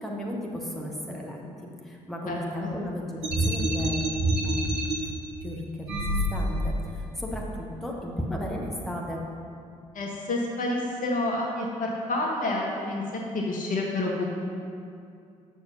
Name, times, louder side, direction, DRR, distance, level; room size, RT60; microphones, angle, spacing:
voice 1, 0.0-4.1 4.4-4.7 5.0-5.1 5.4-6.0 6.3-9.2, left 1 dB, ahead, -2 dB, 1.3 m, -34 dB
voice 2, 2.3-2.7 9.9-13.0 13.3-14.3, left 2 dB, 50° left, -1 dB, 1.3 m, -29 dB
sound 1, 3.2-5.0 5.8-6.8, right 1 dB, 70° right, 1.1 m, -26 dB
6.9 x 6.4 x 5.6 m, 2.4 s
figure-of-eight pair, 40°, 18 cm